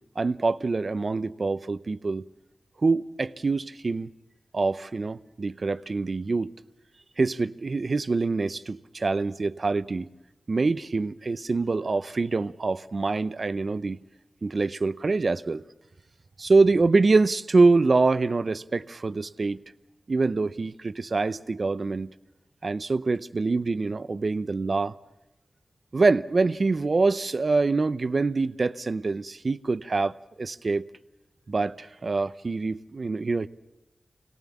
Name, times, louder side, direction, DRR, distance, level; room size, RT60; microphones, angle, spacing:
voice 1, 0.2-2.2 2.8-4.1 4.5-6.5 7.2-10.1 10.5-14.0 14.4-15.6 16.4-19.6 20.1-22.1 22.6-24.9 25.9-30.8 31.5-33.5, right 3 dB, 60° right, 0.7 m, -25 dB
26.0 x 18.0 x 7.3 m
cardioid pair, 40°, 0 cm